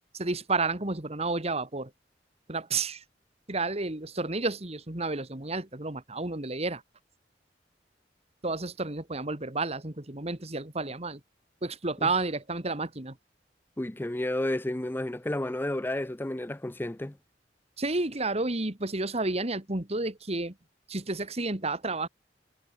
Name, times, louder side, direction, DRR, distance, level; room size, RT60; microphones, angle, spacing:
voice 1, 0.1-1.9 2.5-3.0 3.5-6.8 8.4-11.2 11.6-13.2 17.8-20.5 20.9-22.1, right 3 dB, 35° right, 2.2 m, -31 dB
voice 2, 13.8-17.2, left 1 dB, 10° left, 0.5 m, -31 dB
head